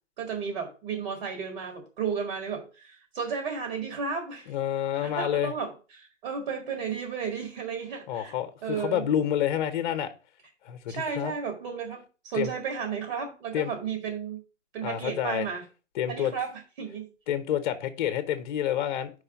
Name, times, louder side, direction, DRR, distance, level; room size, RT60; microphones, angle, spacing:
voice 1, 0.2-4.5 5.0-8.4 8.6-9.0 10.9-14.4 14.7-15.6 16.1-17.1, right 6 dB, 50° right, 1.9 m, -33 dB
voice 2, 4.5-5.5 8.1-10.1 10.6-11.3 12.3-12.5 13.5-13.7 14.8-15.5 15.9-16.3 17.3-19.1, left 10 dB, 40° left, 0.9 m, -28 dB
5.5 x 4.9 x 5.9 m
hypercardioid pair, 145°, 38 cm